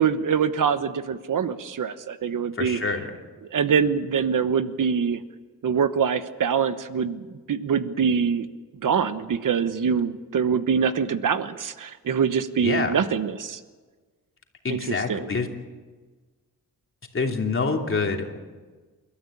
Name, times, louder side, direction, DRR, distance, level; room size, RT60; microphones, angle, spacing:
voice 1, 0.0-2.8 3.5-5.2 5.6-8.5 8.8-13.6 14.7-15.3, right 6 dB, 65° right, 11 dB, 1.1 m, -24 dB
voice 2, 2.5-3.1 12.6-13.0 14.6-15.5 17.1-18.4, left 4 dB, 40° left, 2 dB, 3.0 m, -26 dB
29.0 x 13.5 x 8.6 m, 1.4 s
wide cardioid pair, 120°, 34 cm